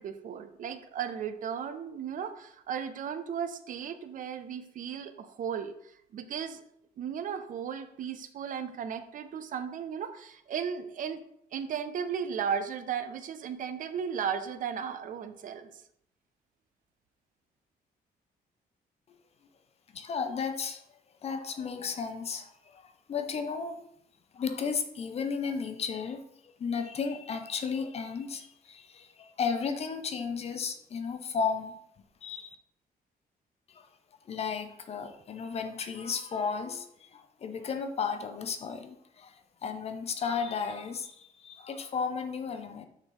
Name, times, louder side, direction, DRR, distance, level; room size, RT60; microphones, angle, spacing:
voice 1, 0.0-5.7 6.1-6.6 7.0-11.2 11.5-15.7, right 7 dB, 55° right, 9 dB, 0.6 m, -35 dB
voice 2, 19.9-20.8 21.2-23.8 24.3-26.2 26.6-31.8 32.2-32.6 33.7-33.9 34.3-42.9, left 5 dB, 40° left, 8 dB, 0.6 m, -34 dB
6.6 x 4.7 x 3.8 m, 0.72 s
cardioid pair, 165°, 16 cm